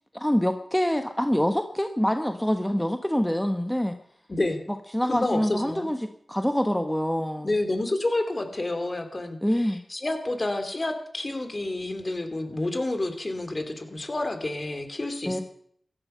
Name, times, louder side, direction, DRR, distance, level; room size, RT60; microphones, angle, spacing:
voice 1, 0.1-3.9 4.9-6.0 6.3-7.5 9.4-9.8 15.3-15.4, equal, 5° left, 6 dB, 1.2 m, -25 dB
voice 2, 4.3-4.6 5.0-5.9 7.4-15.4, left 2 dB, 40° left, 6 dB, 2.9 m, -29 dB
15.0 x 12.0 x 5.7 m, 0.65 s
cardioid pair, 45°, 0 cm